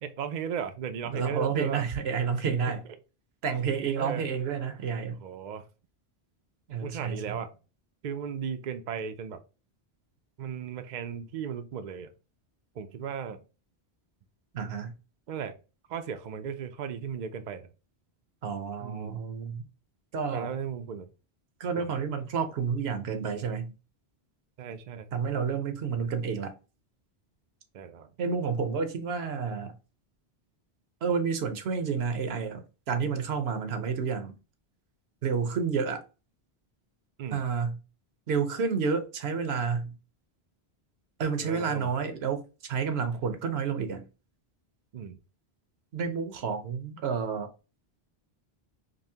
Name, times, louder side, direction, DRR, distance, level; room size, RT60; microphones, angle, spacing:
voice 1, 0.0-1.9 2.7-2.8 4.0-4.2 5.2-5.6 6.8-7.5 8.0-9.4 10.4-12.1 12.8-13.4 15.3-15.5 15.9-17.7 18.8-19.2 20.3-21.1 21.8-21.9 24.6-25.1 27.7-28.1 37.2-37.4 41.4-41.9 44.9-45.2, right 7 dB, 55° right, 0.5 m, -36 dB
voice 2, 1.1-2.8 3.4-5.2 6.7-7.4 14.5-14.9 18.4-19.7 20.1-20.5 21.6-23.7 25.1-26.5 28.2-29.8 31.0-34.3 35.2-36.0 37.3-37.8 38.3-40.0 41.2-44.1 45.9-47.5, right 6 dB, 75° right, 0.9 m, -30 dB
5.2 x 2.0 x 2.7 m
omnidirectional pair, 1.1 m